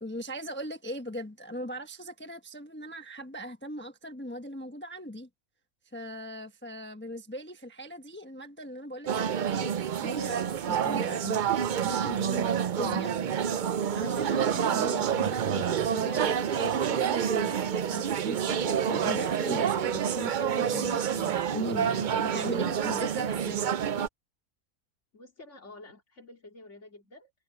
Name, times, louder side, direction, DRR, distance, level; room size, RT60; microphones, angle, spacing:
voice 1, 0.0-5.3 5.9-11.4 11.8-13.2 13.9-17.6 17.9-23.6, equal, 10° left, 1.0 m, -39 dB
sound 1, 9.1-24.1, right 8 dB, 65° right, 0.4 m, -28 dB
voice 2, 21.5-22.5 23.0-23.1 25.1-27.3, left 2 dB, 50° left, 3.4 m, -51 dB
omnidirectional pair, 1.5 m